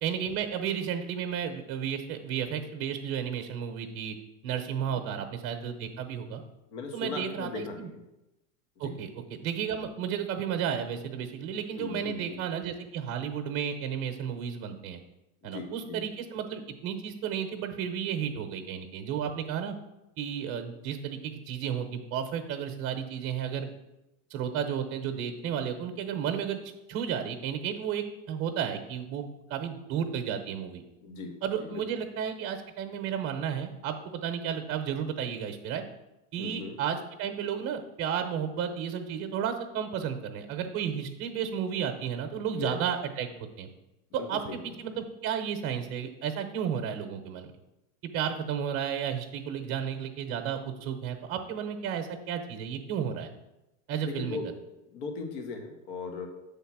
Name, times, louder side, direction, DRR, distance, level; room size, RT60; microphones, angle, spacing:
voice 1, 0.0-4.2 4.4-6.4 6.9-7.9 8.8-15.0 15.4-19.7 20.2-23.7 24.3-26.6 26.9-30.8 31.4-35.8 36.3-43.3 43.6-43.7 44.3-47.5 48.1-53.3 53.9-54.4, right 8 dB, 35° right, 5 dB, 0.9 m, -33 dB
voice 2, 6.7-7.9 8.8-8.9 11.8-12.4 15.4-16.0 31.0-31.8 36.4-36.8 42.5-42.8 44.4-44.7 54.0-54.4 54.9-56.3, left 4 dB, 65° left, 4 dB, 1.3 m, -38 dB
7.1 x 3.6 x 6.0 m, 0.96 s
supercardioid pair, 135°, 41 cm